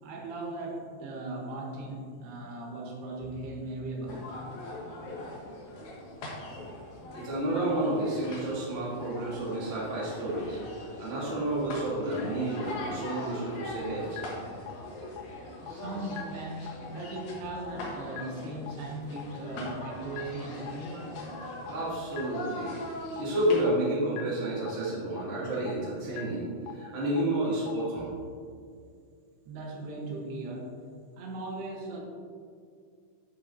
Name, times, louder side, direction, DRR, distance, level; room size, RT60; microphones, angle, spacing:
voice 1, 0.0-4.3 15.7-21.5 29.5-30.8 31.2-32.0, right 2 dB, 90° right, 0 dB, 3.2 m, -38 dB
sound 1, 4.1-23.7, left 1 dB, 60° left, 2.3 m, -41 dB
voice 2, 7.1-10.6 11.0-14.2 21.7-22.7 23.2-28.1, right 1 dB, 25° right, -7 dB, 1.6 m, -30 dB
sound 2, 12.2-12.3 12.7-12.8 13.2-13.3 13.7-13.8 14.2-14.3 14.7-14.8 15.2-15.3 15.7-15.8 16.2-16.3 16.7-16.8 17.2-17.3 17.7-17.8 18.2-18.3 18.7-18.8 19.2-19.3 19.7-19.8 20.2-20.3 20.7-20.8 21.2-21.3 21.7-21.8 22.2-22.3 22.7-22.8 23.2-23.3 23.7-23.8 24.2-24.3 24.7-24.8 25.2-25.3 25.7-25.8 26.2-26.3 26.7-26.8 27.2-27.3 27.7-27.8, left 16 dB, 80° left, 2.2 m, -39 dB
10.5 x 7.0 x 2.7 m, 2.2 s
omnidirectional pair, 4.5 m